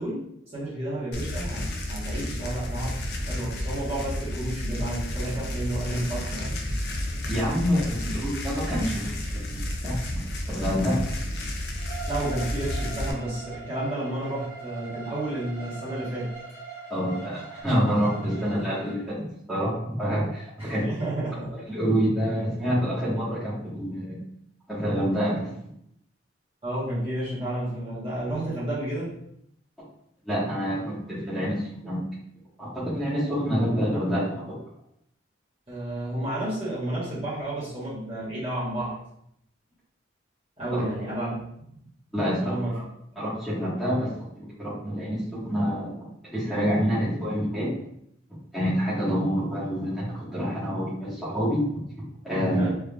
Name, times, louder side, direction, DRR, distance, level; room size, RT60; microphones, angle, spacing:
voice 1, 0.0-6.7 8.0-8.1 12.1-16.3 20.6-21.5 26.6-29.2 35.7-39.0 40.6-41.4 41.7-41.8 42.3-42.7 52.5-52.7, right 1 dB, 30° right, -10 dB, 1.3 m, -31 dB
sound 1, 1.1-13.1, left 1 dB, 55° left, 0.5 m, -31 dB
voice 2, 7.3-9.1 9.8-10.2 10.6-11.1 16.9-19.2 19.5-20.8 21.7-24.2 24.7-25.5 30.2-32.0 32.6-34.6 40.7-40.8 42.1-42.6 43.1-44.1 44.3-45.9 46.3-47.7 48.5-51.6 52.2-52.7, equal, ahead, -12 dB, 1.4 m, -27 dB
Bowed string instrument, 11.8-19.0, right 5 dB, 15° left, 1.0 m, -41 dB
3.5 x 3.2 x 2.4 m, 0.73 s
head